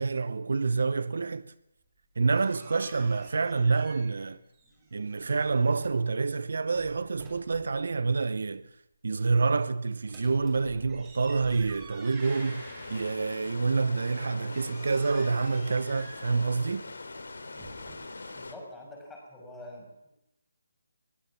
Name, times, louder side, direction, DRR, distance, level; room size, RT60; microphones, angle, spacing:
voice 1, 0.0-1.5 2.2-4.4 4.9-8.7 9.0-16.9, right 4 dB, 70° right, 0.8 m, -27 dB
sound 1, 2.0-4.3 4.5-6.1 6.6-7.8 10.0-13.5 13.9-18.3, right 3 dB, 15° right, 6.9 m, -50 dB
sound 2, 12.2-18.5, left 3 dB, 80° left, 3.1 m, -42 dB
voice 2, 18.3-20.1, left 1 dB, 5° left, 6.3 m, -45 dB
22.5 x 16.0 x 7.3 m
hypercardioid pair, 160°, 0 cm